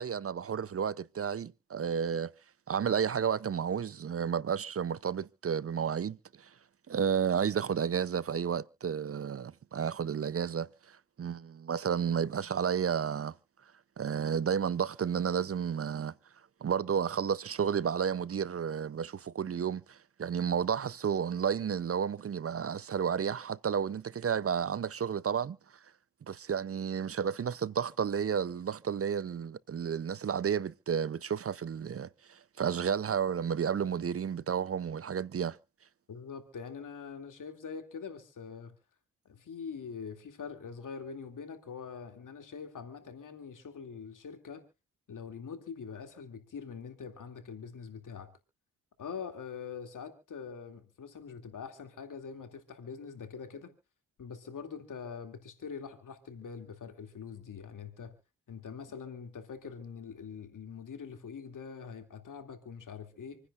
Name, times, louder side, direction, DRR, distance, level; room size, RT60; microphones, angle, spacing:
voice 1, 0.0-2.3 2.7-6.5 6.9-13.3 14.0-16.1 16.6-25.6 26.3-35.6, right 7 dB, 45° right, 0.6 m, -32 dB
voice 2, 36.1-38.8 39.2-44.6 45.1-48.3 49.0-53.7 54.2-58.2 58.5-63.4, left 6 dB, 75° left, 2.5 m, -44 dB
27.5 x 10.0 x 2.5 m
supercardioid pair, 40°, 32 cm